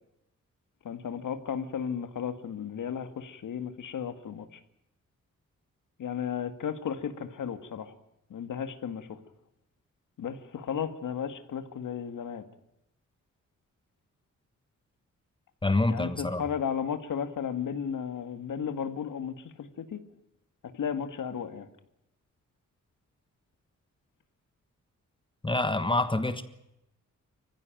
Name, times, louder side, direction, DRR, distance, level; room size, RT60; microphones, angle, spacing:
voice 1, 0.8-4.6 6.0-7.9 8.3-9.2 10.2-12.4 15.9-20.0 20.7-21.7, left 7 dB, 80° left, 9 dB, 2.0 m, -34 dB
voice 2, 15.6-16.4 25.4-26.4, left 2 dB, 15° left, 10 dB, 1.4 m, -26 dB
24.5 x 15.5 x 9.1 m, 0.84 s
wide cardioid pair, 110°, 31 cm